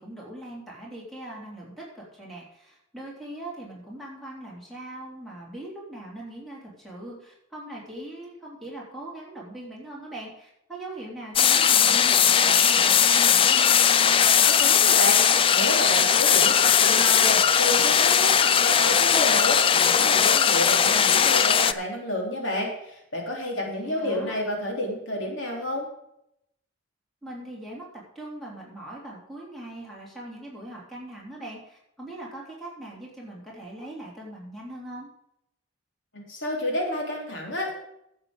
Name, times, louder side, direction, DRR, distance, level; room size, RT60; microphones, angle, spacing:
voice 1, 0.0-13.8 23.8-24.4 27.2-35.1, right 1 dB, ahead, -5 dB, 3.4 m, -41 dB
sound 1, 11.4-21.7, left 8 dB, 25° left, 0.3 m, -19 dB
voice 2, 14.4-15.2 15.5-25.9 36.1-37.7, left 1 dB, 70° left, 0 dB, 3.2 m, -30 dB
11.5 x 8.2 x 5.0 m, 0.78 s
head